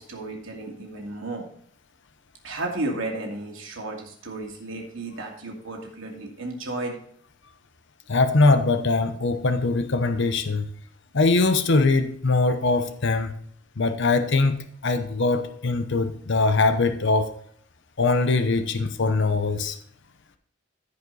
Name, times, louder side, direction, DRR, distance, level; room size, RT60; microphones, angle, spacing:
voice 1, 0.0-1.5 2.4-7.0, right 2 dB, 90° right, 0 dB, 2.5 m, -33 dB
voice 2, 8.1-10.7 11.1-13.3 13.8-17.3 18.0-19.8, left 3 dB, 65° left, 9 dB, 0.9 m, -22 dB
14.5 x 5.3 x 4.0 m, 0.63 s
head